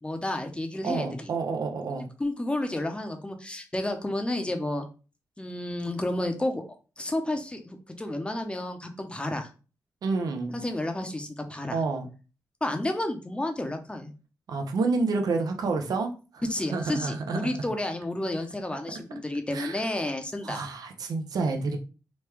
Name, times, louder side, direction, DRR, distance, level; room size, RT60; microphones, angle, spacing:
voice 1, 0.0-1.3 2.2-4.9 5.4-6.6 7.0-9.5 10.5-11.8 12.6-14.1 16.5-20.6, left 1 dB, 15° left, 5 dB, 0.7 m, -31 dB
voice 2, 0.8-2.1 10.0-10.5 11.7-12.1 14.5-16.4 16.7-17.7 19.5-19.8 20.4-21.8, right 4 dB, 70° right, 4 dB, 0.6 m, -29 dB
3.0 x 2.3 x 3.3 m, 0.34 s
cardioid pair, 75°, 7 cm